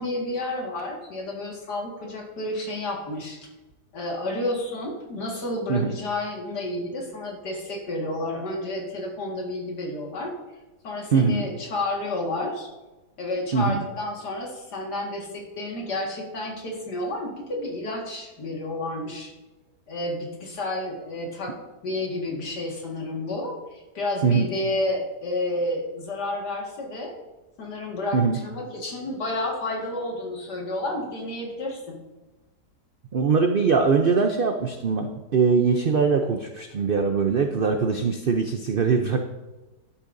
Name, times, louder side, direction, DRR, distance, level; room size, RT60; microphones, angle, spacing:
voice 1, 0.0-3.4 3.9-10.3 10.8-12.7 13.2-19.3 19.9-21.5 21.8-27.1 27.6-32.0, left 2 dB, 75° left, -1 dB, 2.4 m, -30 dB
voice 2, 11.1-11.4 13.5-13.8 24.2-24.5 28.1-28.4 33.1-39.2, right 5 dB, 70° right, 5 dB, 0.5 m, -22 dB
11.5 x 8.3 x 2.6 m, 1.1 s
omnidirectional pair, 1.8 m